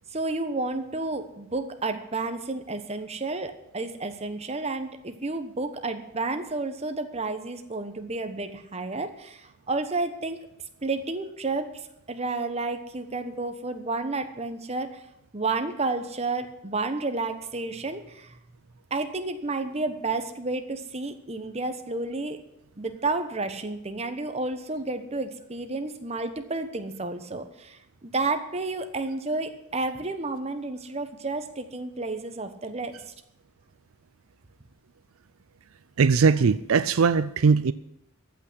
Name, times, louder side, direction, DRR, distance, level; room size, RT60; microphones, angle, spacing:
voice 1, 0.1-10.4 10.8-11.7 12.1-15.0 15.3-18.3 18.9-22.4 22.8-33.1, right 3 dB, 30° right, 1.1 m, -31 dB
voice 2, 36.0-37.7, right 5 dB, 80° right, 0.5 m, -20 dB
15.0 x 6.0 x 9.7 m
head